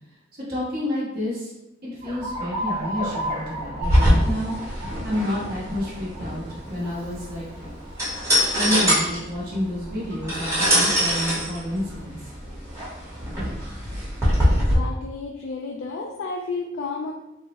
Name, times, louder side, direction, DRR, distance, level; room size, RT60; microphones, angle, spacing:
voice 1, 0.5-1.5 1.8-6.4 6.7-7.4 8.5-12.3, left 1 dB, 45° right, -8 dB, 1.0 m, -29 dB
Alarm, 2.0-12.1, equal, 30° right, 0.5 m, -36 dB
sound 1, 3.8-14.7, equal, 15° right, 1.0 m, -23 dB
voice 2, 14.5-17.1, left 3 dB, 65° left, 0 dB, 0.3 m, -32 dB
3.5 x 2.1 x 2.9 m, 0.92 s
head